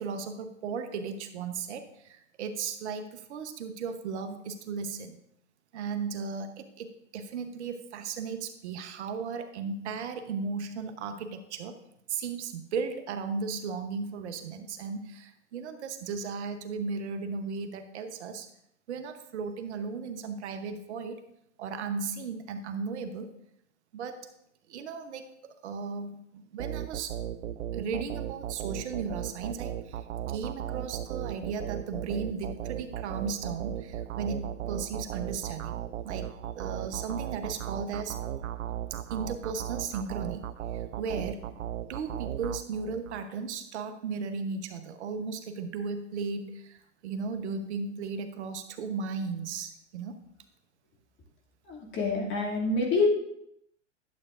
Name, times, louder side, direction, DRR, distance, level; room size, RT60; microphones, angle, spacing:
voice 1, 0.0-5.2 5.7-11.8 12.1-18.5 18.9-21.2 21.6-23.3 23.9-24.3 24.7-25.3 25.6-27.2 27.7-36.3 36.6-38.2 39.1-40.4 40.7-41.4 41.9-50.2, right 5 dB, 60° right, 8 dB, 1.0 m, -36 dB
sound 1, 26.6-43.2, right 11 dB, 85° right, 0.5 m, -36 dB
voice 2, 51.7-53.1, left 3 dB, 30° left, -1 dB, 2.5 m, -27 dB
11.5 x 7.8 x 2.5 m, 0.77 s
hypercardioid pair, 115°, 37 cm